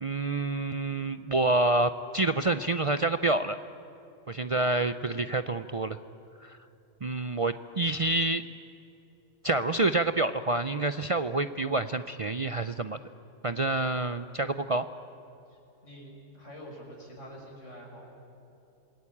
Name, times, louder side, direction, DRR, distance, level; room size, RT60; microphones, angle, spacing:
voice 1, 0.0-3.6 4.3-6.0 6.4-6.6 7.0-8.5 9.4-13.0 13.4-14.9, right 2 dB, 40° right, 11 dB, 0.5 m, -28 dB
voice 2, 15.5-18.1, equal, 85° left, -1 dB, 6.1 m, -47 dB
27.0 x 20.5 x 8.5 m, 2.9 s
omnidirectional pair, 1.2 m